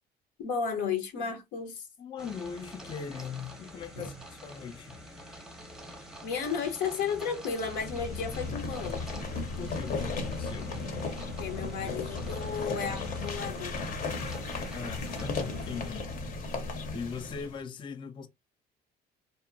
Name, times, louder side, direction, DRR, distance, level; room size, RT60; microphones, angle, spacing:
voice 1, 0.4-1.9 4.0-4.1 6.2-9.0 11.4-13.8, left 6 dB, 90° left, 0.9 m, -33 dB
voice 2, 2.0-5.0 9.6-10.7 14.7-16.1 16.9-18.3, left 6 dB, 30° left, 0.4 m, -40 dB
sound 1, 2.2-15.9, equal, 5° right, 0.7 m, -47 dB
sound 2, 7.6-17.6, left 3 dB, 55° left, 0.8 m, -35 dB
2.8 x 2.1 x 2.4 m
cardioid pair, 110°, 17 cm